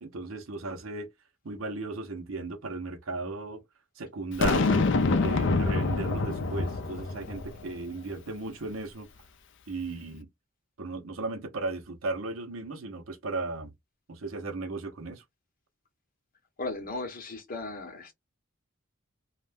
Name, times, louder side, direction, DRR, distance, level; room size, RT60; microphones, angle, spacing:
voice 1, 0.0-1.1 1.4-3.6 4.0-4.9 5.1-9.1 9.7-10.3 10.8-13.7 14.1-15.2, right 3 dB, 75° right, 0.7 m, -36 dB
Boom, 4.4-7.7, left 3 dB, 60° left, 0.5 m, -26 dB
voice 2, 16.6-18.1, left 2 dB, 45° left, 0.9 m, -36 dB
2.4 x 2.1 x 3.3 m
head